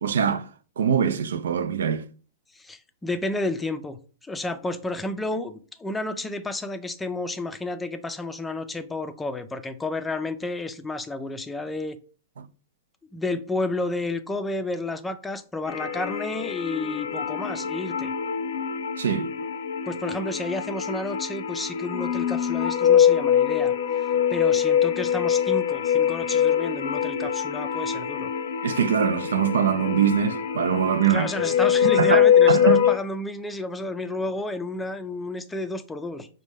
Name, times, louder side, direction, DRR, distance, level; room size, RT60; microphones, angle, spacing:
voice 1, 0.0-0.5 0.8-2.1 12.4-12.5 19.0-19.3 28.6-31.3 31.9-32.8, right 8 dB, 80° right, 0.4 m, -23 dB
voice 2, 2.5-12.0 13.1-18.1 19.9-24.0 24.3-28.3 31.1-36.3, left 2 dB, 10° left, 0.4 m, -31 dB
sound 1, 15.7-33.0, left 9 dB, 80° left, 0.6 m, -23 dB
5.0 x 2.2 x 3.5 m
hypercardioid pair, 130°, 0 cm